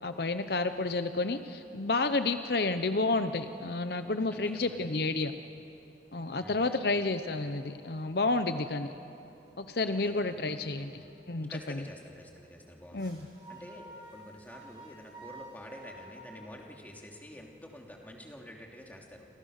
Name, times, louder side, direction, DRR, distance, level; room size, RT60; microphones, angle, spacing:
voice 1, 0.0-5.3 6.1-8.9 9.6-11.0 11.3-11.8 12.9-13.2, left 3 dB, 60° left, 9 dB, 0.8 m, -30 dB
voice 2, 4.3-4.8 6.4-6.8 9.9-10.5 10.8-11.1 11.5-13.1 13.5-19.3, equal, 10° left, 0 dB, 3.0 m, -48 dB
sound 1, 6.3-11.4 13.0-17.4, right 1 dB, 25° right, 4.8 m, -54 dB
29.0 x 26.5 x 6.6 m, 2.8 s
head